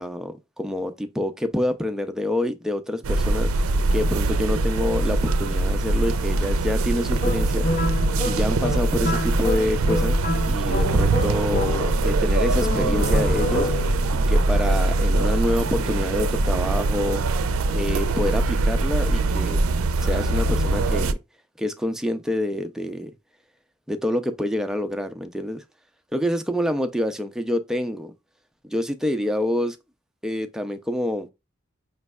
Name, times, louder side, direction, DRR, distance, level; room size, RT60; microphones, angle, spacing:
voice 1, 0.0-7.7 8.2-13.7 14.3-17.2 17.7-19.6 20.0-21.2 21.6-23.1 23.9-25.6 26.1-28.1 28.6-29.8 30.2-31.3, left 1 dB, 5° right, 0.4 m, -27 dB
sound 1, 3.0-21.1, right 2 dB, 90° right, 0.5 m, -22 dB
sound 2, 7.2-12.2 12.6-14.1, left 1 dB, 45° left, 0.6 m, -28 dB
5.2 x 3.2 x 2.3 m
head